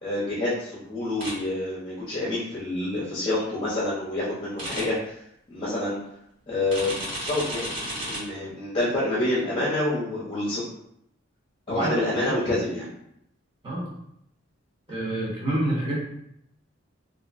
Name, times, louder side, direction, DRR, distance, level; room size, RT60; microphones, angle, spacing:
voice 1, 0.0-5.1 5.5-6.0 6.5-10.6 11.7-12.9, left 1 dB, 25° left, -7 dB, 0.7 m, -27 dB
sound 1, 1.2-1.3 4.6-4.8 6.7-8.2, right 1 dB, 60° right, 1.4 m, -32 dB
voice 2, 11.7-12.2 13.6-13.9 14.9-16.0, right 1 dB, 25° right, -6 dB, 0.9 m, -28 dB
2.8 x 2.5 x 2.5 m, 0.75 s
head